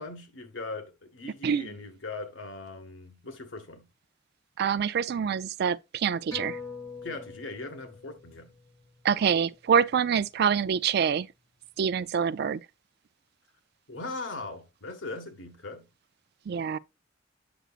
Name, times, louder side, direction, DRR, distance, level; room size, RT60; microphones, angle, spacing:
voice 1, 0.0-3.8 7.0-8.5 13.9-15.9, left 2 dB, 85° left, 1.6 m, -39 dB
voice 2, 4.6-6.6 9.0-11.3 11.8-12.6 16.5-16.8, right 7 dB, 60° right, 0.4 m, -26 dB
sound 1, 6.3-11.2 11.6-11.7, left 4 dB, 20° left, 5.0 m, -45 dB
7.9 x 6.2 x 2.4 m
head